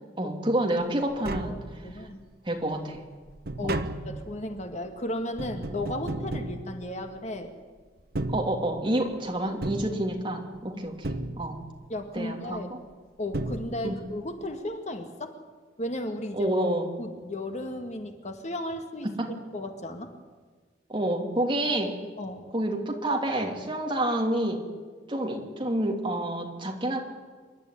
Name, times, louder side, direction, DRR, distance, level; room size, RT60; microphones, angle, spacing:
voice 1, 0.2-1.6 2.0-2.1 2.4-3.0 3.6-4.0 8.3-11.6 12.1-12.8 13.8-13.9 16.3-16.9 19.0-19.3 20.9-21.9 22.5-24.6 25.1-27.0, right 1 dB, 30° right, 2 dB, 2.9 m, -28 dB
Tap, 0.8-0.9 1.1-2.2 2.6-7.4 8.0-9.1 9.6-10.6 11.0-11.9 12.9-13.0 13.3-14.2 14.4-14.5, right 2 dB, 60° right, 1.1 m, -35 dB
voice 2, 1.8-2.3 3.6-7.5 10.7-10.8 11.9-12.7 13.2-15.4 15.8-16.5 17.0-19.1 19.5-20.1 22.2-22.5, left 1 dB, 40° left, 6 dB, 1.7 m, -35 dB
27.0 x 12.0 x 9.9 m, 1.5 s
head